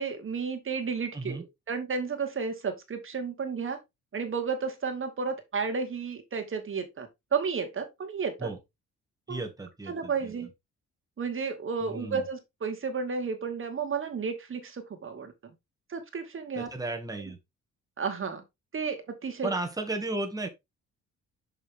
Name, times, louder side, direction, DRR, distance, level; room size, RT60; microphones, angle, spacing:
voice 1, 0.0-3.8 4.1-8.5 9.3-9.4 9.9-10.5 11.2-15.3 15.9-16.7 18.0-18.4 18.7-19.5, right 5 dB, 45° right, 2.2 m, -32 dB
voice 2, 1.1-1.4 8.4-8.6 9.3-10.5 11.8-12.2 16.6-17.4 19.4-20.5, right 2 dB, 10° right, 2.1 m, -34 dB
6.6 x 5.7 x 3.6 m
cardioid pair, 90°, 30 cm